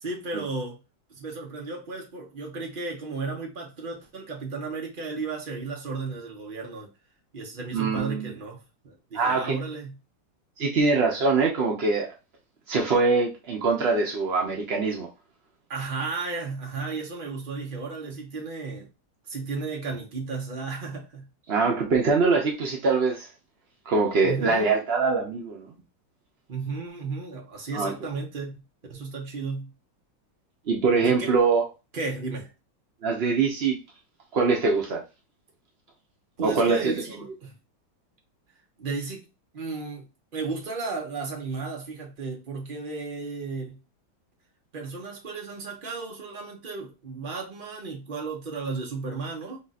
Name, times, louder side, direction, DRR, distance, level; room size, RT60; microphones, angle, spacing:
voice 1, 0.0-0.8 1.1-6.9 7.3-10.0 15.7-18.9 19.3-21.3 24.2-24.7 26.5-28.6 28.9-29.7 31.0-31.4 31.9-32.5 36.4-37.5 38.8-39.3 39.5-40.1 40.3-43.8 44.7-49.6, right 4 dB, 40° right, 0.7 m, -34 dB
voice 2, 7.7-8.3 9.1-9.6 10.6-12.1 12.7-15.1 21.5-23.3 23.9-25.7 27.7-27.9 30.7-31.6 33.0-33.8 34.3-35.0 36.4-36.9, right 4 dB, 80° right, 0.5 m, -23 dB
3.7 x 2.5 x 4.0 m
omnidirectional pair, 2.2 m